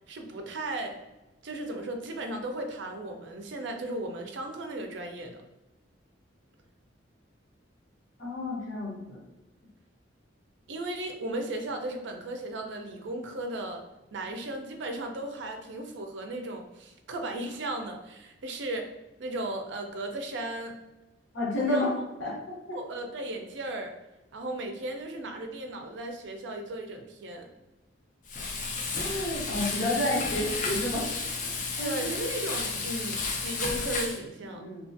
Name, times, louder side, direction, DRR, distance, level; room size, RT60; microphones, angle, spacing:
voice 1, 0.1-1.1 1.4-5.4 10.7-13.8 14.1-18.9 19.2-20.8 21.7-21.9 22.7-23.9 24.3-27.5 31.8-34.7, right 1 dB, 65° right, 4 dB, 0.4 m, -36 dB
voice 2, 8.2-9.2 21.3-22.8 28.9-31.1 31.8-32.2 34.5-34.9, left 1 dB, 75° left, -4 dB, 0.8 m, -30 dB
Frying (food), 28.3-34.2, left 4 dB, 45° left, 0.4 m, -32 dB
2.7 x 2.3 x 2.5 m, 1.0 s
head